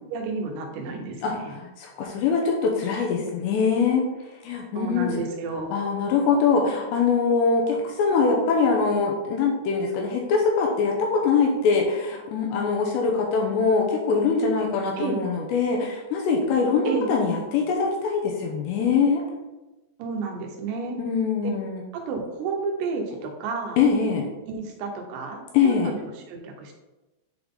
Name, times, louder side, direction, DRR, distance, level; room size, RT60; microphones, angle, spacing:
voice 1, 0.1-1.6 4.8-5.8 15.0-15.2 16.9-17.1 20.0-21.0 21.9-23.8 24.5-26.7, right 4 dB, 85° right, 2 dB, 3.7 m, -31 dB
voice 2, 1.2-4.1 4.4-5.1 5.7-19.2 21.0-21.8 23.8-24.3 25.5-25.9, left 5 dB, 80° left, 0 dB, 2.6 m, -23 dB
10.0 x 3.9 x 3.8 m, 1.1 s
omnidirectional pair, 5.8 m